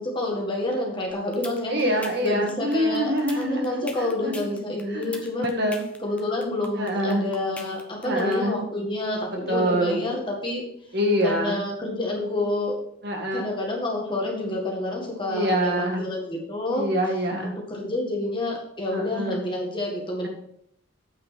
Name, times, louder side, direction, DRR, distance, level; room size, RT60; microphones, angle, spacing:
voice 1, 0.0-1.7 2.2-5.5 6.0-10.6 11.2-12.7 13.3-16.9 17.4-20.3, left 2 dB, 20° left, -1 dB, 1.8 m, -28 dB
sound 1, 1.1-8.3, left 2 dB, 5° left, 0.7 m, -40 dB
voice 2, 1.7-4.5 4.9-5.9 6.8-7.2 8.0-8.6 9.5-10.0 10.9-11.6 13.0-13.5 15.3-16.0 16.7-17.5 18.9-19.4 20.2-20.3, equal, 50° right, 1 dB, 1.7 m, -25 dB
8.6 x 5.1 x 6.2 m, 0.72 s
head